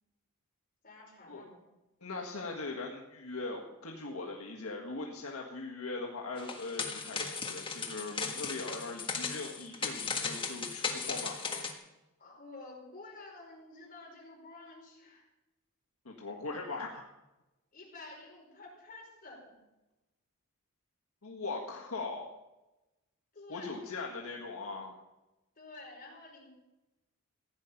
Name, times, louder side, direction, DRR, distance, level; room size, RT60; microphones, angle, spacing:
voice 1, 0.8-1.6 12.2-15.3 17.7-19.5 23.3-23.9 25.5-26.5, left 2 dB, 40° left, -2 dB, 5.2 m, -50 dB
voice 2, 2.0-11.6 16.0-17.0 21.2-22.3 23.5-24.9, left 3 dB, 80° left, 0 dB, 1.6 m, -40 dB
sound 1, 6.4-11.7, left 5 dB, 25° left, 1.6 m, -37 dB
15.5 x 10.0 x 5.9 m, 1.0 s
head